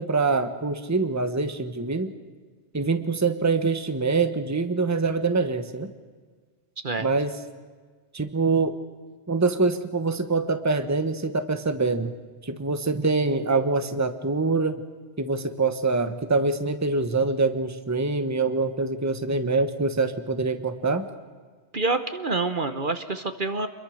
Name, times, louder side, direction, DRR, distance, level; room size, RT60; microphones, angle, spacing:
voice 1, 0.0-2.1 2.7-5.9 7.0-7.4 8.1-8.8 9.3-12.1 12.4-14.8 15.2-21.1, right 3 dB, 15° right, 9 dB, 1.1 m, -25 dB
voice 2, 21.7-23.7, right 3 dB, 50° right, 9 dB, 1.3 m, -27 dB
27.5 x 22.0 x 6.5 m, 1.5 s
omnidirectional pair, 1.2 m